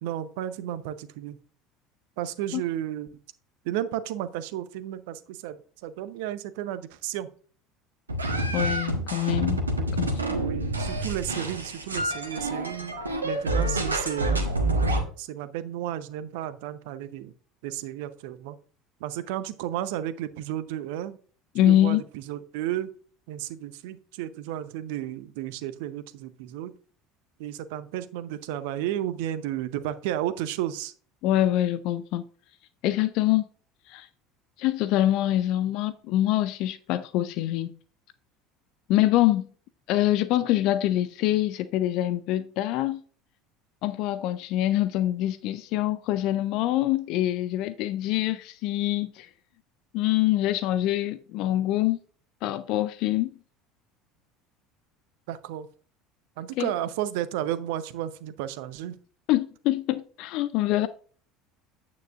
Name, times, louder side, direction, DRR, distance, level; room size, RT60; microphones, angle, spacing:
voice 1, 0.0-1.4 2.2-3.1 3.6-7.3 9.8-10.0 10.4-13.0 13.2-14.5 15.2-17.3 17.6-18.5 19.0-21.2 21.6-22.9 23.3-26.7 27.4-30.9 55.3-55.7 56.4-59.0, right 12 dB, 60° right, 0.7 m, -33 dB
sound 1, 8.1-15.0, right 1 dB, 80° right, 1.3 m, -27 dB
voice 2, 8.5-9.6 9.9-10.2 21.5-22.0 31.2-32.2 32.8-33.4 33.9-34.1 34.6-37.8 38.9-39.5 39.9-43.0 43.8-49.3 49.9-52.0 52.4-53.3 56.6-56.7 59.3-60.9, left 14 dB, 55° left, 0.5 m, -25 dB
9.4 x 9.0 x 2.5 m
figure-of-eight pair, 65°, 0 cm